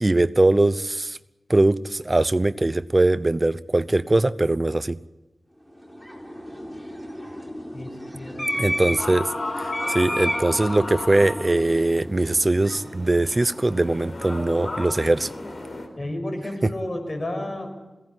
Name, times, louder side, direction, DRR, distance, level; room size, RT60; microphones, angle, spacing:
voice 1, 0.0-1.2 1.5-5.0 8.6-9.3 9.6-15.3 16.6-16.7, right 2 dB, 30° right, 15 dB, 0.8 m, -21 dB
sound 1, 5.7-14.2, equal, 5° left, 4.1 m, -33 dB
voice 2, 7.7-9.0 15.9-17.7, left 1 dB, 40° left, 4 dB, 6.0 m, -32 dB
sound 2, 9.0-15.9, left 2 dB, 55° left, 4.4 m, -34 dB
22.0 x 17.5 x 9.8 m, 1.1 s
wide cardioid pair, 90°, 0 cm